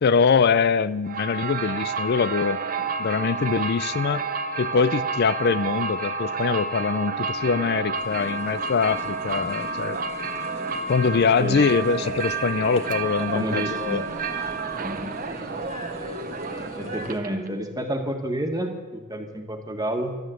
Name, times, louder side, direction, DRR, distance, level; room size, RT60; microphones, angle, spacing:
voice 1, 0.0-4.2 4.6-10.0 10.9-14.1, left 5 dB, 50° left, 16 dB, 0.4 m, -23 dB
sound 1, 1.0-17.5, right 4 dB, 40° right, 0.9 m, -30 dB
sound 2, 7.9-17.2, left 1 dB, 30° left, 1.7 m, -40 dB
voice 2, 13.2-14.0 14.8-15.1 16.8-20.2, right 1 dB, 15° right, 4 dB, 1.6 m, -30 dB
13.0 x 12.5 x 7.8 m, 1.3 s
head